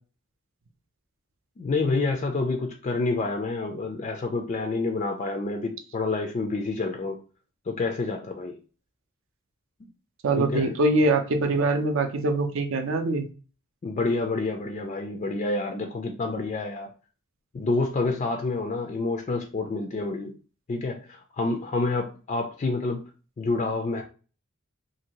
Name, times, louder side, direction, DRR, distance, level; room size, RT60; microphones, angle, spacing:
voice 1, 1.6-7.2 7.7-8.6 10.4-10.7 13.8-16.9 17.5-20.3 20.7-23.0 23.4-24.0, left 3 dB, 30° left, 4 dB, 0.3 m, -28 dB
voice 2, 10.2-13.3, right 2 dB, 60° right, 6 dB, 0.5 m, -23 dB
2.7 x 2.6 x 2.8 m, 0.36 s
head